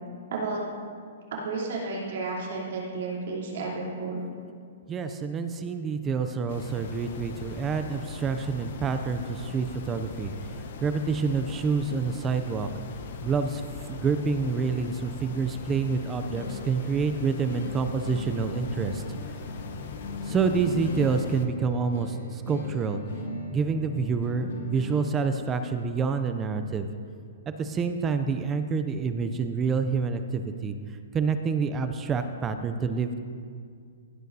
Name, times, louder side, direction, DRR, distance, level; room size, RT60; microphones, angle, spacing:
voice 1, 0.3-0.6 1.4-4.2, right 3 dB, 60° right, -4 dB, 3.1 m, -32 dB
voice 2, 4.9-10.3 10.8-12.7 13.2-13.6 13.9-19.0 20.3-23.0 23.5-26.9 27.5-30.7 31.1-33.2, right 5 dB, 15° right, 8 dB, 0.4 m, -27 dB
sound 1, 6.5-21.5, left 4 dB, 55° left, 0.8 m, -40 dB
sound 2, 15.9-25.0, left 2 dB, 90° left, 2.1 m, -39 dB
17.0 x 9.1 x 2.7 m, 2.2 s
hypercardioid pair, 165°, 0 cm